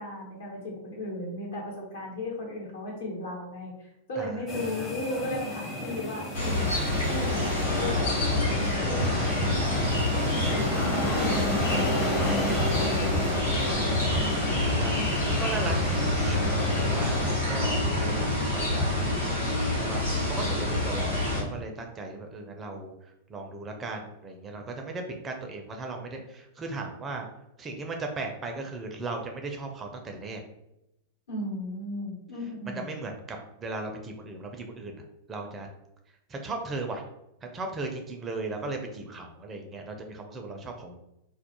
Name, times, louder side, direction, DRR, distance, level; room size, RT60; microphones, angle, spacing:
voice 1, 0.0-9.9 10.3-11.4 31.3-32.8, left 1 dB, 65° left, -3 dB, 1.0 m, -36 dB
voice 2, 4.2-5.0 9.2-9.3 12.0-19.1 19.8-22.9 23.3-27.3 27.6-30.4 32.7-34.9 35.3-35.7 36.3-37.0 37.4-41.0, right 3 dB, 25° right, 3 dB, 0.4 m, -37 dB
sound 1, 4.5-17.3, left 1 dB, 20° left, 0.6 m, -32 dB
sound 2, 6.3-21.4, left 2 dB, 85° left, 1.2 m, -27 dB
sound 3, 7.7-8.0 8.3-13.3 13.5-18.9, equal, 45° left, 1.0 m, -35 dB
2.3 x 2.0 x 2.9 m, 0.86 s
figure-of-eight pair, 100°, 0 cm